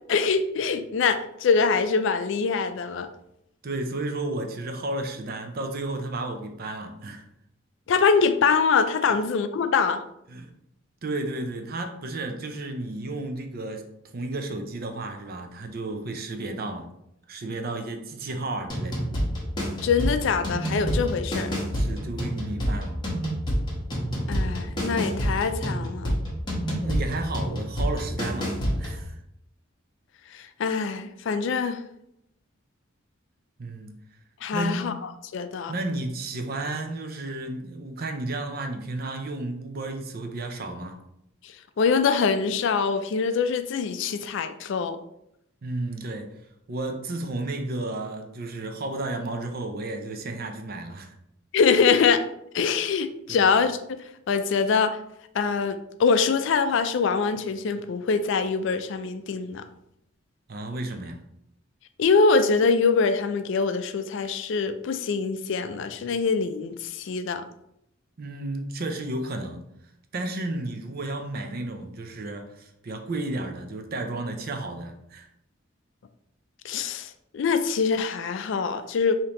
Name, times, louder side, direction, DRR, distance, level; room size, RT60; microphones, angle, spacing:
voice 1, 0.1-3.1 7.9-10.0 19.8-21.6 24.3-26.2 30.3-31.8 34.4-34.9 35.3-35.7 41.8-45.0 51.5-52.2 52.5-53.8 54.3-55.0 55.3-59.7 62.0-67.4 76.6-79.2, left 5 dB, 65° left, 10 dB, 0.3 m, -24 dB
voice 2, 3.6-7.3 10.3-10.5 11.0-13.8 14.1-16.9 17.3-19.0 21.7-23.0 26.8-29.2 33.6-33.9 34.5-34.9 35.7-41.0 45.6-46.3 46.7-51.1 53.3-53.5 60.5-61.2 68.2-69.6 70.1-75.3, right 2 dB, 50° right, 5 dB, 0.5 m, -32 dB
sound 1, 18.7-29.0, equal, 25° left, 1.1 m, -28 dB
5.0 x 2.8 x 2.9 m, 0.79 s
head